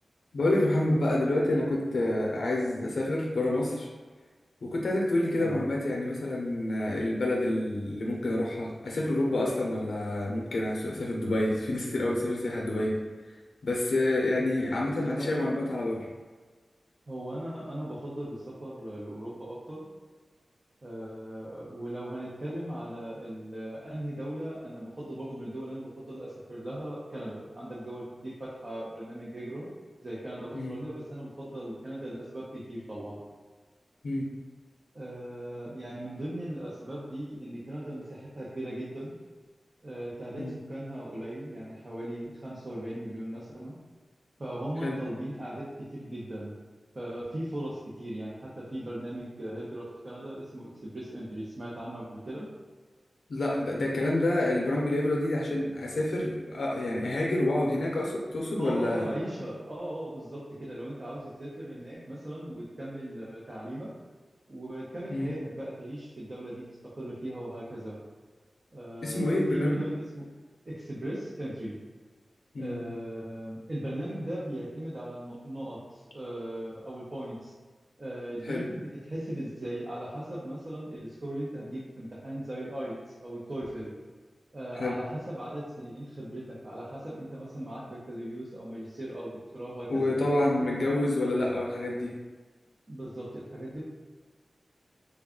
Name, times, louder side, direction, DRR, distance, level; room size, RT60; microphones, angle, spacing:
voice 1, 0.3-3.9 4.6-13.0 13.6-16.1 30.5-30.8 34.0-34.3 40.4-40.5 44.8-45.0 53.3-59.1 65.1-65.3 69.0-69.8 72.5-72.8 78.4-78.7 84.8-85.0 89.9-92.2, left 1 dB, 80° left, -3 dB, 0.5 m, -28 dB
voice 2, 14.4-15.5 17.1-19.8 20.8-29.7 30.0-33.2 34.9-39.1 39.8-43.7 44.4-46.5 46.9-52.5 58.6-63.9 64.5-68.0 68.7-70.2 70.6-71.8 72.6-77.5 78.0-82.9 83.2-83.9 84.5-91.1 92.9-93.8, right 1 dB, 40° right, -7 dB, 0.7 m, -38 dB
3.4 x 2.3 x 3.7 m, 1.4 s
wide cardioid pair, 95°, 0 cm